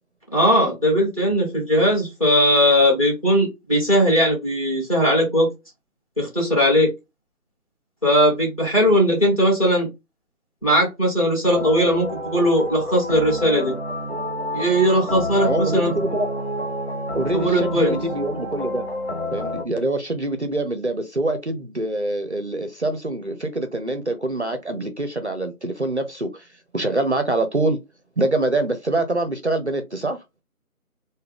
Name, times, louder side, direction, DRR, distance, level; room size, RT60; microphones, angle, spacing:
voice 1, 0.3-5.5 6.2-6.9 8.0-9.9 10.6-13.7 14.5-15.9 17.3-18.0, equal, 25° left, 1.3 m, -19 dB
sound 1, 11.4-19.6, left 1 dB, 45° left, 0.5 m, -29 dB
voice 2, 15.4-16.3 17.1-18.9 19.3-27.8 28.2-30.2, right 2 dB, 50° right, 0.5 m, -25 dB
3.5 x 2.2 x 3.2 m
figure-of-eight pair, 175°, 45 cm